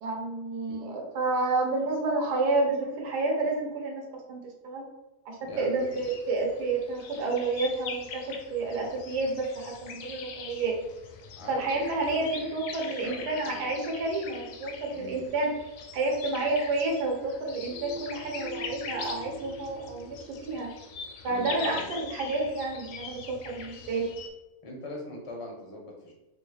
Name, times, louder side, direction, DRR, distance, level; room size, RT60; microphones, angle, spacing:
voice 1, 0.0-4.8 5.3-8.2 8.5-10.8 11.5-15.5 15.9-20.7 21.2-24.1, right 3 dB, 85° right, 0 dB, 1.3 m, -30 dB
voice 2, 5.4-6.1 11.4-11.8 12.1-13.7 14.9-15.3 21.2-21.9 24.6-26.1, left 1 dB, 45° left, -1 dB, 0.4 m, -41 dB
sound 1, 5.8-24.3, left 5 dB, 70° left, 0.8 m, -42 dB
sound 2, 17.7-21.3, right 2 dB, 40° right, 0.5 m, -44 dB
4.2 x 2.3 x 3.1 m, 1.0 s
omnidirectional pair, 1.7 m